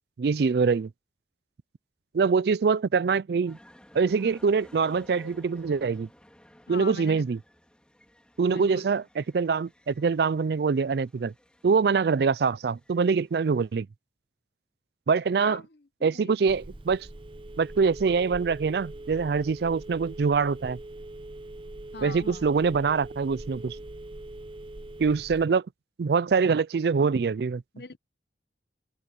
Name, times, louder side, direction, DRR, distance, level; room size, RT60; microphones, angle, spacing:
voice 1, 0.2-0.9 2.1-3.6 3.9-6.1 6.7-7.4 8.4-11.3 11.6-13.9 15.1-15.6 16.0-17.1 17.6-20.8 22.0-23.8 25.0-25.6 26.0-27.6, right 5 dB, 60° right, 0.4 m, -24 dB
sound 1, 3.5-13.8, equal, 5° left, 4.1 m, -56 dB
voice 2, 6.7-7.2 8.5-8.9 15.4-16.4 21.9-22.6 27.7-28.0, left 3 dB, 60° left, 1.1 m, -42 dB
Telephone, 16.5-25.5, right 1 dB, 30° right, 0.7 m, -42 dB
head